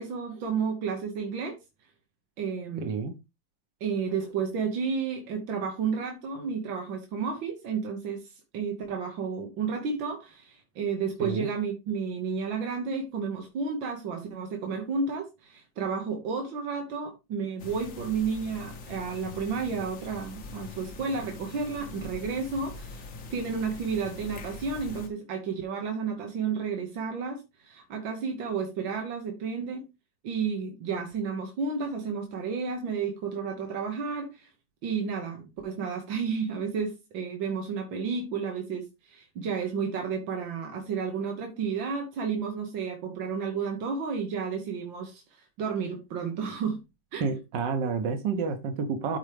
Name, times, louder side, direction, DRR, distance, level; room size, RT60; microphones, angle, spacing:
voice 1, 0.0-1.6 2.4-3.0 3.8-23.1 23.3-29.9 30.2-34.5 34.8-46.8 47.1-47.3, right 5 dB, 90° right, 2.0 m, -32 dB
voice 2, 2.8-3.1 11.2-11.5 47.2-49.2, right 5 dB, 70° right, 1.7 m, -29 dB
sound 1, 17.6-25.1, left 3 dB, 50° left, 1.3 m, -43 dB
13.0 x 4.4 x 3.4 m
omnidirectional pair, 2.0 m